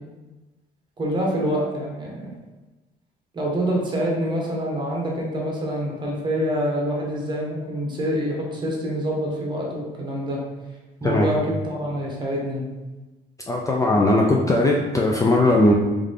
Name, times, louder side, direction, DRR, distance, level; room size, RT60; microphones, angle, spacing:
voice 1, 1.0-2.3 3.3-10.4 11.0-12.7, equal, 25° right, -2 dB, 1.2 m, -26 dB
voice 2, 13.5-15.7, left 1 dB, 20° left, -1 dB, 0.4 m, -18 dB
3.7 x 3.3 x 3.6 m, 1.2 s
cardioid pair, 110°, 17 cm